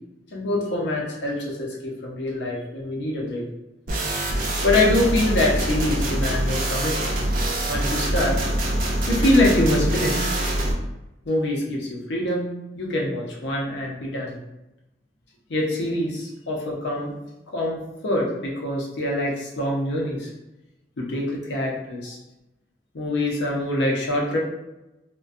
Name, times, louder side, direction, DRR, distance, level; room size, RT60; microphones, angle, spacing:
voice 1, 0.3-3.4 4.6-7.1 7.7-8.4 9.1-10.3 11.3-14.4 15.5-17.1 17.5-20.3 21.0-22.2 22.9-24.4, left 1 dB, 75° left, -2 dB, 0.6 m, -24 dB
sound 1, 3.9-10.7, right 1 dB, 50° right, 0.4 m, -24 dB
2.4 x 2.2 x 2.5 m, 0.96 s
head